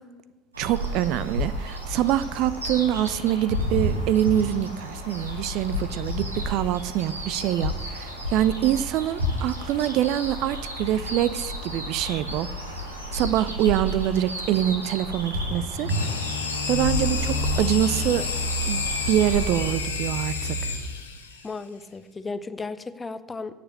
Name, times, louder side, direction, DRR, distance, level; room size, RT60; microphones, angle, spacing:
sound 1, 0.5-19.7, equal, 85° right, 1.3 m, -31 dB
voice 1, 0.6-12.5 13.1-16.1 16.7-18.2 18.7-20.7, right 12 dB, 55° right, 16 dB, 0.4 m, -25 dB
sound 2, 15.9-21.4, left 3 dB, 80° left, 0.9 m, -28 dB
voice 2, 21.4-23.6, left 3 dB, 20° left, 13 dB, 0.6 m, -35 dB
9.9 x 6.7 x 6.7 m, 1.2 s
figure-of-eight pair, 60°, 0 cm